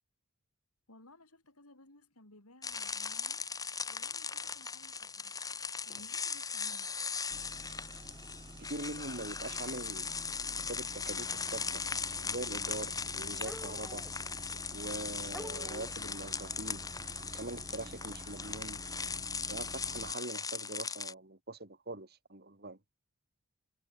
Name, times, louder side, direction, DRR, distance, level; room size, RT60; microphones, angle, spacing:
voice 1, 0.9-3.4 3.9-5.3 5.9-7.2, left 2 dB, 80° left, 5.2 m, -59 dB
sound 1, 2.6-21.1, left 5 dB, 15° left, 1.3 m, -39 dB
sound 2, 6.3-6.4 7.9-8.0 9.0-9.2 11.7-11.8 13.4-14.2 14.9-15.0 15.3-16.1, equal, ahead, 3.8 m, -48 dB
sound 3, 7.3-20.1, right 1 dB, 25° right, 3.1 m, -49 dB
voice 2, 8.6-10.2 10.6-11.8 12.2-14.1 14.7-16.9 17.3-18.8 19.5-22.8, right 2 dB, 45° right, 3.6 m, -43 dB
head